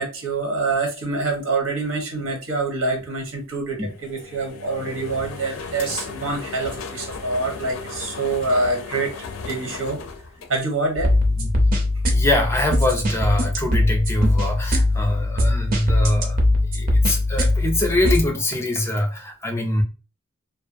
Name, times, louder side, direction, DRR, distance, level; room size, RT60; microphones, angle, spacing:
voice 1, 0.0-10.0 10.5-11.2 14.2-14.3, right 3 dB, 90° right, 2 dB, 0.9 m, -26 dB
sound 1, 3.8-11.1, left 5 dB, 90° left, 0.4 m, -36 dB
sound 2, 11.0-18.2, left 1 dB, 45° right, 0.5 m, -21 dB
voice 2, 12.1-16.4 16.7-19.8, left 1 dB, 15° left, 3 dB, 0.4 m, -23 dB
2.5 x 2.2 x 2.5 m, 0.32 s
head